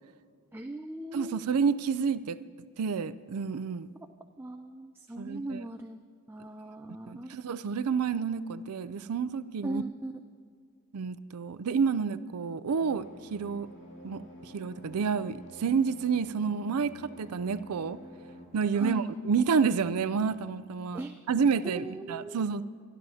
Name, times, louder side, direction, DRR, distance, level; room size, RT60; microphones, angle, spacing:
voice 1, 0.5-1.5 4.0-4.1 4.4-6.0 6.3-7.4 9.6-10.2 18.7-19.1 20.9-21.2 21.7-22.4, right 1 dB, 10° right, 6 dB, 0.3 m, -39 dB
voice 2, 1.1-2.4 2.8-3.9 5.2-5.6 7.1-9.8 10.9-13.1 13.3-13.7 14.0-14.2 14.5-18.0 18.5-21.0 21.3-22.6, right 6 dB, 85° right, 16 dB, 0.4 m, -29 dB
sound 1, 12.7-18.5, left 1 dB, 55° left, 2.5 m, -49 dB
25.0 x 11.0 x 2.8 m, 2.2 s
head